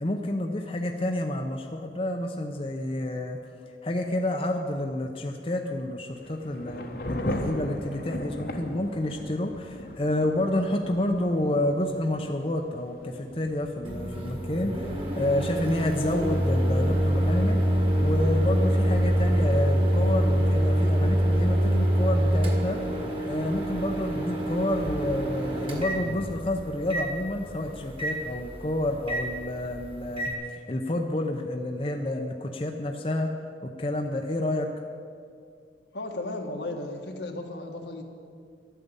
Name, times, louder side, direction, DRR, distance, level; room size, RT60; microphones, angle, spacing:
voice 1, 0.0-3.4 3.8-14.9 15.2-17.6 18.0-22.8 23.2-33.3 33.6-34.7, left 1 dB, 30° left, 3 dB, 0.7 m, -29 dB
Thunder / Rain, 6.1-20.6, left 1 dB, 55° left, 1.2 m, -40 dB
Microwave oven, 13.8-30.3, equal, 30° right, 1.8 m, -25 dB
voice 2, 35.9-38.0, left 2 dB, 80° left, 2 dB, 1.6 m, -35 dB
12.0 x 9.2 x 8.2 m, 2.2 s
head